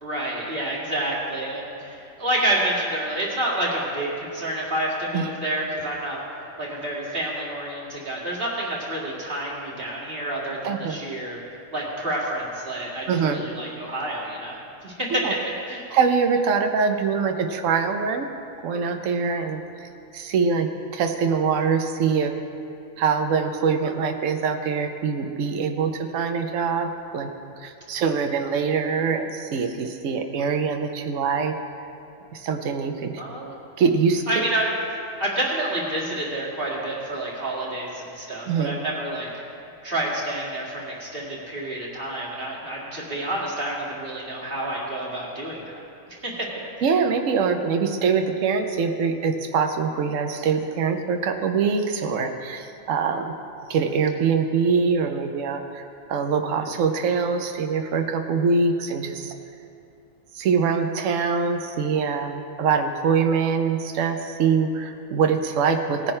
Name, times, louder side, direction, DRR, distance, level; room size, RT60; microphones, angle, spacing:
voice 1, 0.0-6.2 6.6-11.4 11.7-14.6 14.8-15.8 33.2-33.6 34.3-34.7 35.2-39.3 39.8-45.8 46.2-46.5, right 1 dB, 45° right, -5 dB, 2.4 m, -28 dB
voice 2, 10.6-11.0 13.1-13.4 15.1-15.3 15.9-18.3 18.6-22.3 23.0-27.3 27.6-31.6 32.3-33.2 33.8-34.4 38.5-38.8 46.8-53.3 53.7-59.3 60.3-66.1, right 5 dB, 75° right, 5 dB, 1.1 m, -24 dB
18.5 x 10.0 x 3.3 m, 2.6 s
omnidirectional pair, 1.4 m